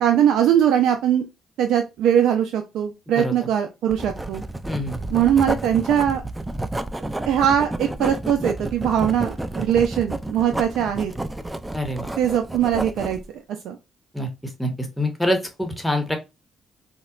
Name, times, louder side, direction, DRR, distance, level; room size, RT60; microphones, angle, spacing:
voice 1, 0.0-1.2 1.6-4.4 5.1-6.2 7.3-11.1 12.2-13.2 13.6-13.8, right 9 dB, 85° right, 5 dB, 0.3 m, -21 dB
Writing, 3.9-13.2, right 1 dB, 10° right, 0.4 m, -30 dB
voice 2, 4.6-5.0 11.7-12.1 14.1-14.3 14.6-16.2, left 1 dB, 5° left, 4 dB, 0.9 m, -25 dB
4.0 x 2.1 x 2.3 m, 0.25 s
cardioid pair, 90°, 0 cm